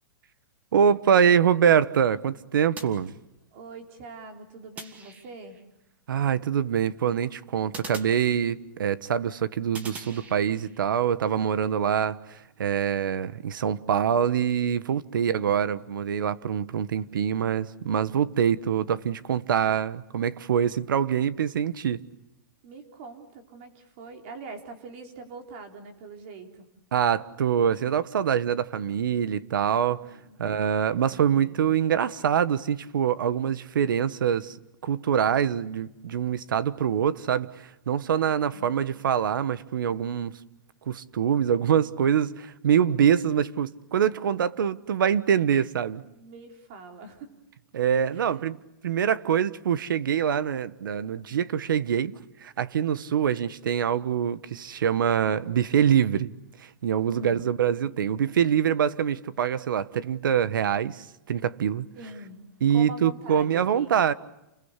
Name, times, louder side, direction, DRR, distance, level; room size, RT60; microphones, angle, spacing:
voice 1, 0.7-3.1 6.1-22.0 26.9-30.0 30.4-34.6 34.8-40.4 40.9-46.0 47.7-48.6 48.8-52.1 52.4-56.3 56.6-61.9 62.6-64.1, right 8 dB, 85° right, 1.4 m, -24 dB
sound 1, 2.8-3.7 4.8-5.6 7.7-8.9 9.7-10.8, right 4 dB, 15° right, 1.8 m, -43 dB
voice 2, 3.5-5.6 22.6-26.7 30.0-30.4 30.8-31.8 46.1-47.3 48.1-48.4 57.1-57.5 62.0-62.4 62.7-63.9, right 3 dB, 40° right, 4.2 m, -44 dB
29.0 x 21.5 x 8.3 m
supercardioid pair, 170°, 11 cm